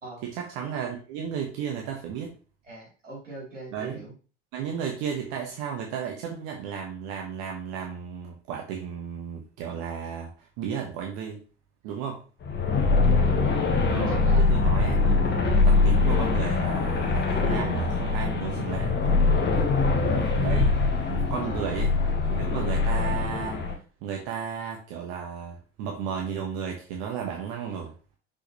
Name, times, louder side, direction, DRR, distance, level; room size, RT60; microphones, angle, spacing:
voice 1, 0.2-2.4 3.7-4.0 4.5-11.4 11.8-12.2 13.9-15.2 15.6-19.2 20.3-20.8 21.1-21.9 22.3-23.6 24.0-27.9, right 7 dB, 55° right, 1 dB, 1.4 m, -34 dB
voice 2, 2.6-4.1 12.6-12.9 14.1-14.4 21.4-21.7, right 2 dB, 80° right, -5 dB, 3.5 m, -40 dB
sound 1, 12.4-23.7, left 4 dB, 30° left, 1.5 m, -23 dB
6.3 x 5.4 x 3.1 m, 0.37 s
figure-of-eight pair, 65°, 37 cm